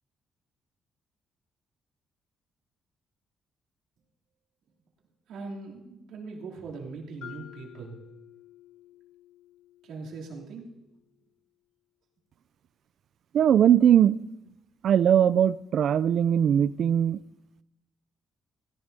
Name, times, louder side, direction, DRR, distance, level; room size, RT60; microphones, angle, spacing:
voice 1, 5.3-8.0 9.8-10.7, right 4 dB, 85° right, 3.0 m, -40 dB
Mallet percussion, 7.2-11.2, left 10 dB, 80° left, 1.8 m, -51 dB
voice 2, 13.3-14.2 14.8-17.2, right 9 dB, 65° right, 0.4 m, -20 dB
17.0 x 15.5 x 2.7 m
cardioid pair, 90°, 0 cm